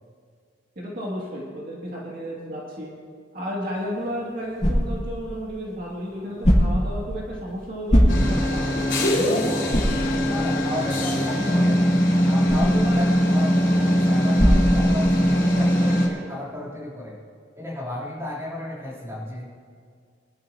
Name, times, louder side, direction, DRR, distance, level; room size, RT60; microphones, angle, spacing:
voice 1, 0.8-2.9 3.3-9.6, equal, 50° right, -5 dB, 2.6 m, -32 dB
sound 1, 3.7-15.5, equal, 40° left, 3.1 m, -25 dB
sound 2, 8.1-16.1, equal, 65° left, 3.9 m, -21 dB
voice 2, 10.3-11.9 12.3-17.2 17.6-19.4, left 1 dB, 15° right, -7 dB, 3.7 m, -33 dB
23.0 x 12.0 x 3.0 m, 2.2 s
head